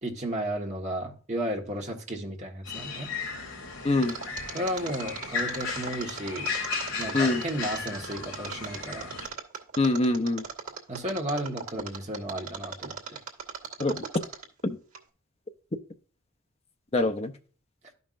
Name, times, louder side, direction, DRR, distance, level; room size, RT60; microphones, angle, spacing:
voice 1, 0.0-3.1 4.5-6.5 7.0-9.1 10.9-13.2, right 1 dB, 35° right, 0 dB, 1.3 m, -33 dB
sound 1, 2.7-9.3, left 5 dB, 75° left, 2.8 m, -35 dB
voice 2, 3.8-4.2 7.1-7.4 9.8-10.4 13.8-14.2 14.6-14.8 16.9-17.3, left 2 dB, 30° left, 8 dB, 0.6 m, -24 dB
Mechanisms, 4.0-14.6 14.9-15.0, right 6 dB, 80° right, 1.3 m, -38 dB
12.0 x 5.4 x 2.5 m, 0.40 s
head